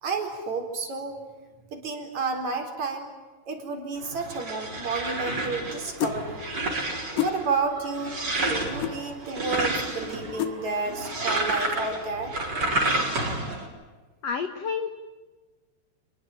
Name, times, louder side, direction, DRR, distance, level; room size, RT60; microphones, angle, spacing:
voice 1, 0.0-1.2 1.7-3.1 3.5-6.4 7.1-12.3, right 4 dB, 45° right, 4 dB, 5.1 m, -31 dB
sound 1, 4.0-13.7, right 2 dB, 25° right, 4.9 m, -30 dB
sound 2, 6.0-6.2 7.2-7.4 8.8-9.0 10.4-10.6, left 11 dB, 80° left, 3.6 m, -27 dB
voice 2, 14.2-14.9, left 6 dB, 65° left, 9 dB, 1.6 m, -29 dB
28.5 x 22.0 x 9.0 m, 1.3 s
omnidirectional pair, 4.9 m